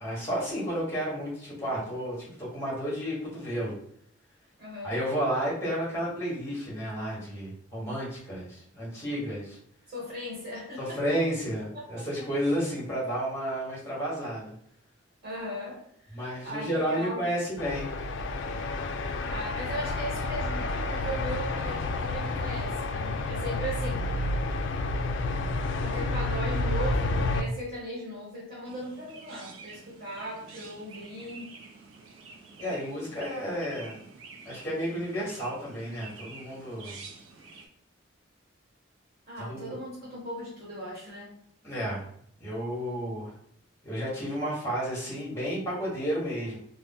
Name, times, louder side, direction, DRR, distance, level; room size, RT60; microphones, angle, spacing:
voice 1, 0.0-3.8 4.8-9.6 10.8-14.5 16.1-17.9 32.6-34.0 34.4-37.0 39.4-39.7 41.6-42.0 42.4-43.3 43.8-46.6, equal, 15° left, -5 dB, 1.3 m, -32 dB
voice 2, 4.6-5.0 9.9-11.0 11.7-12.3 15.2-15.8 16.1-17.3 19.3-24.2 25.7-31.6 39.3-41.4, equal, 35° right, -8 dB, 1.3 m, -38 dB
sound 1, 17.6-27.4, left 2 dB, 60° left, 0.3 m, -30 dB
Chirp tweet, 28.6-37.7, right 4 dB, 85° right, 0.6 m, -48 dB
3.0 x 2.1 x 3.5 m, 0.66 s
head